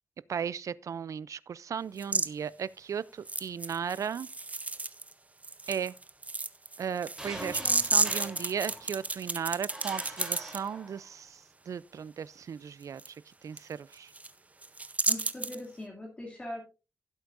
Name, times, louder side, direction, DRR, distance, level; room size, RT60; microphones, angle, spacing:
voice 1, 0.3-4.3 5.7-5.9 6.8-13.2 13.4-14.1, right 7 dB, 75° right, 0.4 m, -36 dB
sound 1, 2.0-2.3 3.2-5.1 5.4-10.6 13.0-13.1 13.6-13.7 13.9-14.3 14.6-15.6, right 3 dB, 25° right, 0.7 m, -31 dB
sound 2, 7.2-9.2 9.7-11.2, right 1 dB, 10° right, 3.3 m, -43 dB
voice 2, 7.4-7.8 15.1-16.6, left 1 dB, 20° left, 2.5 m, -41 dB
16.0 x 8.1 x 2.5 m
wide cardioid pair, 120°, 6 cm